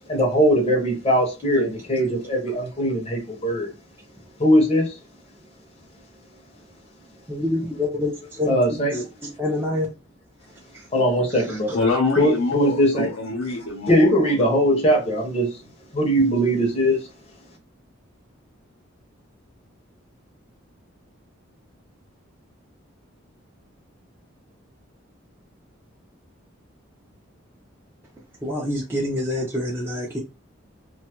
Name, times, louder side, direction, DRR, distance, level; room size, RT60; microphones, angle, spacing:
voice 1, 0.1-3.7 4.4-5.0 8.5-8.9 10.9-11.8 12.2-13.1 13.9-15.6 15.9-17.1, equal, 30° left, 0.7 m, -20 dB
voice 2, 7.3-8.1 8.4-8.6 8.9-9.9 28.4-30.2, left 1 dB, 10° right, 0.5 m, -26 dB
voice 3, 11.7-14.5, left 3 dB, 85° left, 0.7 m, -26 dB
2.6 x 2.2 x 2.9 m
head